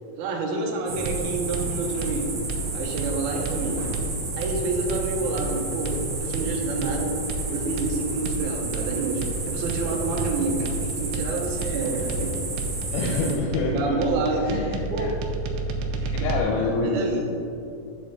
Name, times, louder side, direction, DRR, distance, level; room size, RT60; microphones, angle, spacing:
voice 1, 0.2-2.3 2.7-3.9 4.3-7.2 7.5-12.3 13.7-15.1 15.9-16.3 16.8-17.2, right 3 dB, 75° right, 0 dB, 1.9 m, -28 dB
sound 1, 0.9-13.3, right 3 dB, 55° right, 1.8 m, -31 dB
sound 2, 1.0-16.4, right 3 dB, 90° right, 1.9 m, -31 dB
voice 2, 12.9-14.0 14.4-15.1 16.1-17.2, left 3 dB, 85° left, -1 dB, 2.5 m, -27 dB
8.6 x 5.1 x 4.1 m, 2.6 s
omnidirectional pair, 4.4 m